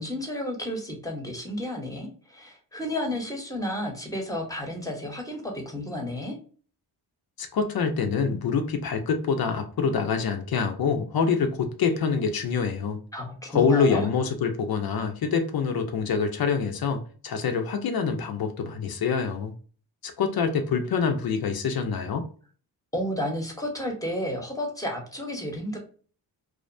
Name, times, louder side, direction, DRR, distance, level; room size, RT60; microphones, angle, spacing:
voice 1, 0.0-6.3 13.1-14.1 22.9-25.8, left 1 dB, 10° left, 0.9 m, -32 dB
voice 2, 7.4-13.0 13.5-19.5 20.0-22.3, left 5 dB, 55° left, 0.5 m, -26 dB
2.5 x 2.1 x 2.5 m
cardioid pair, 85°, 44 cm